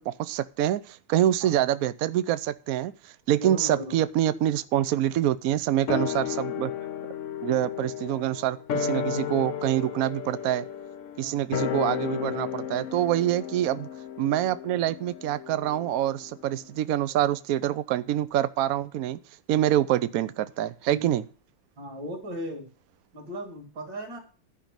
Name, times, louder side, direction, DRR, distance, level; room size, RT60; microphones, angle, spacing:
voice 1, 0.0-6.7 7.4-10.7 11.2-13.9 14.2-19.2 19.5-21.2, right 12 dB, 75° right, 0.8 m, -26 dB
voice 2, 3.4-4.0 4.3-4.4 11.2-11.5 20.9-21.1 21.8-22.7 23.1-24.2, equal, 60° right, 2.7 m, -37 dB
sound 1, 5.9-16.5 16.8-16.9, left 9 dB, 75° left, 0.6 m, -33 dB
11.5 x 5.3 x 7.3 m
omnidirectional pair, 2.2 m